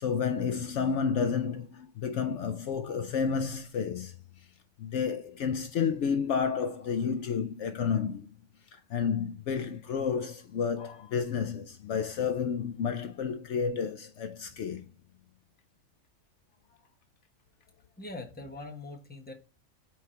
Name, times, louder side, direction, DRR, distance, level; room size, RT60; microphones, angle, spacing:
voice 1, 0.0-4.1 4.8-8.3 8.7-14.8, left 6 dB, 65° left, 0.9 m, -31 dB
voice 2, 18.0-19.3, left 2 dB, 10° left, 1.0 m, -42 dB
4.7 x 4.6 x 5.7 m
omnidirectional pair, 1.4 m